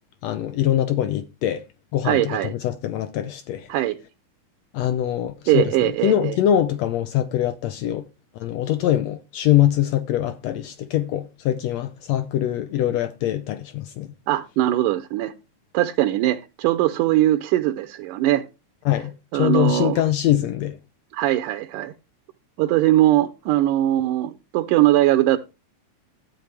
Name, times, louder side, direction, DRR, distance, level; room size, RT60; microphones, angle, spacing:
voice 1, 0.2-1.6 1.9-3.7 4.7-8.0 8.3-14.1 18.8-20.8, left 12 dB, 85° left, 1.5 m, -23 dB
voice 2, 2.0-2.5 3.7-4.0 5.5-6.4 14.3-15.3 15.7-18.5 19.3-20.0 21.1-21.9 22.6-25.4, right 14 dB, 80° right, 2.1 m, -20 dB
13.0 x 9.1 x 3.4 m
omnidirectional pair, 3.9 m